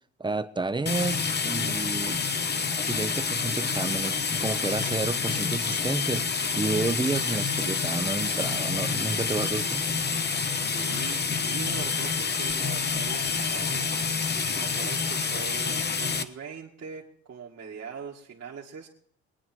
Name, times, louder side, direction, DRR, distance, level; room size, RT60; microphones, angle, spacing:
voice 1, 0.2-2.2 2.9-9.9, right 3 dB, 15° right, 13 dB, 0.8 m, -31 dB
sound 1, 0.9-16.2, left 5 dB, 35° left, 1.1 m, -28 dB
voice 2, 10.6-18.9, right 6 dB, 55° right, -4 dB, 2.1 m, -42 dB
22.5 x 9.3 x 4.5 m, 0.64 s
cardioid pair, 90°, 30 cm